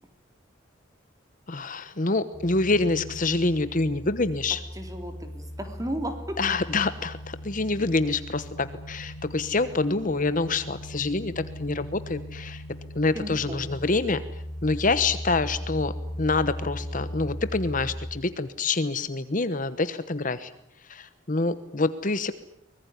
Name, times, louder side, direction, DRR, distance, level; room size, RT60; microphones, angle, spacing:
voice 1, 1.5-4.6 6.4-12.6 12.9-14.2 14.6-15.9 16.2-20.5 20.8-22.3, left 3 dB, 40° left, 13 dB, 1.1 m, -26 dB
sound 1, 2.3-18.1, equal, 20° left, 6.7 m, -38 dB
voice 2, 4.7-6.4 13.1-13.7, right 1 dB, 15° right, 6 dB, 3.7 m, -34 dB
24.0 x 20.5 x 9.8 m, 0.74 s
head